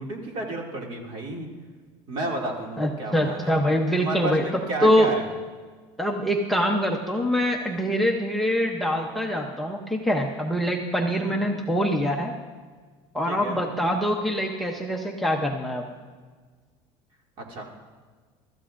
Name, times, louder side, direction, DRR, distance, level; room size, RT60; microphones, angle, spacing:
voice 1, 0.0-1.5 2.1-3.5 4.0-5.3 11.1-11.4 13.3-13.6 17.4-17.7, right 2 dB, 45° right, 0 dB, 2.3 m, -32 dB
voice 2, 2.8-5.1 6.0-12.3 13.1-15.9, equal, ahead, 2 dB, 0.7 m, -24 dB
23.5 x 13.5 x 2.5 m, 1.5 s
cardioid pair, 160°, 12 cm